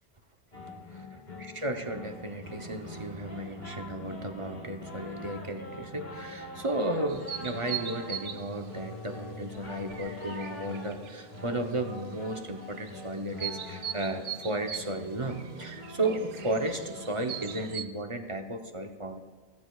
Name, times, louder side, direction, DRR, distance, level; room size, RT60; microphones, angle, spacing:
sound 1, 0.5-17.7, left 1 dB, 70° left, 2.0 m, -44 dB
voice 1, 0.6-19.2, right 1 dB, 35° right, 5 dB, 0.8 m, -34 dB
sound 2, 7.1-17.8, right 9 dB, 85° right, 0.9 m, -42 dB
17.0 x 14.0 x 2.3 m, 1.5 s
omnidirectional pair, 1.1 m